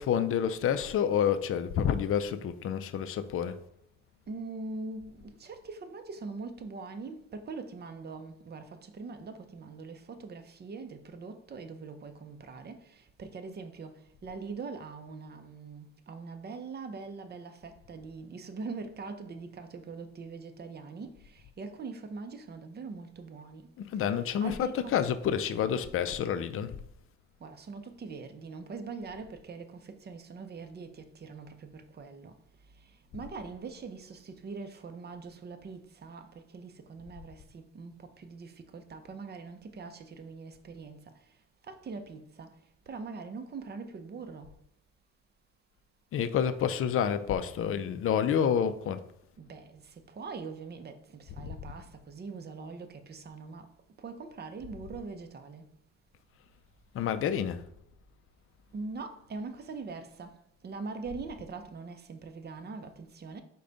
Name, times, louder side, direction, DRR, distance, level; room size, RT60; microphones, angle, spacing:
voice 1, 0.0-3.6 23.8-26.8 46.1-49.0 51.4-51.5 56.9-57.6, left 8 dB, 45° left, 0.4 m, -29 dB
voice 2, 4.3-23.7 24.4-25.0 27.4-32.3 33.1-41.0 41.7-42.5 42.9-44.5 49.4-49.8 50.1-53.6 54.0-55.6 58.7-60.3 60.6-63.4, right 4 dB, 35° right, 0.6 m, -42 dB
4.8 x 2.3 x 3.9 m
cardioid pair, 90°, 30 cm